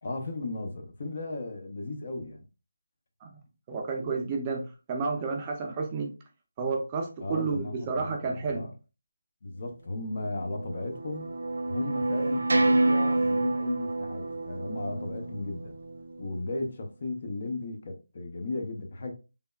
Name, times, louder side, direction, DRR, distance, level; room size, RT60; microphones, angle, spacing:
voice 1, 0.0-2.5 7.2-8.7 9.4-11.3 11.6-15.8 16.2-19.1, left 2 dB, 45° left, 0.5 m, -36 dB
voice 2, 3.7-6.1 6.6-8.7, right 4 dB, 20° right, 0.5 m, -31 dB
sound 1, 10.0-16.4, right 2 dB, 75° right, 0.4 m, -28 dB
3.3 x 2.1 x 2.2 m
figure-of-eight pair, 165°, 0 cm